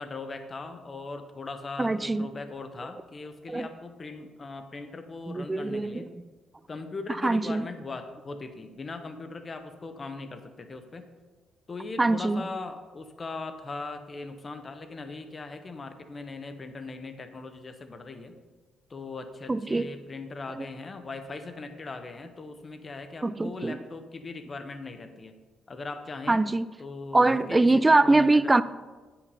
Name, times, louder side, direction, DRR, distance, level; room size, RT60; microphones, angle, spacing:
voice 1, 0.0-6.0 6.7-11.0 11.7-18.3 18.9-25.4 25.7-26.4 26.8-28.5, left 3 dB, 35° left, 0.9 m, -39 dB
voice 2, 1.8-2.3 3.5-3.7 5.3-6.2 7.2-7.7 12.0-12.5 19.5-19.9 20.5-20.7 23.2-23.8 26.3-26.7 27.1-28.6, right 2 dB, 20° right, 0.3 m, -23 dB
8.3 x 5.8 x 5.4 m
cardioid pair, 90°, 0 cm